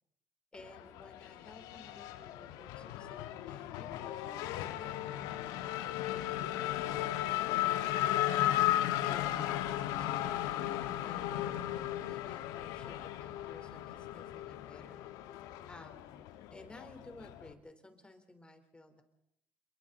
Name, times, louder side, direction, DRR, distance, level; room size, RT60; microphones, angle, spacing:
Race car auto racing / Accelerating revving vroom, 0.5-17.5, left 13 dB, 80° left, 1.3 m, -35 dB
voice 1, 0.5-4.5 4.8-5.2 9.0-15.0 15.7-19.0, left 2 dB, 15° left, 6 dB, 4.0 m, -55 dB
28.0 x 23.0 x 4.1 m, 0.78 s
supercardioid pair, 70°, 6 cm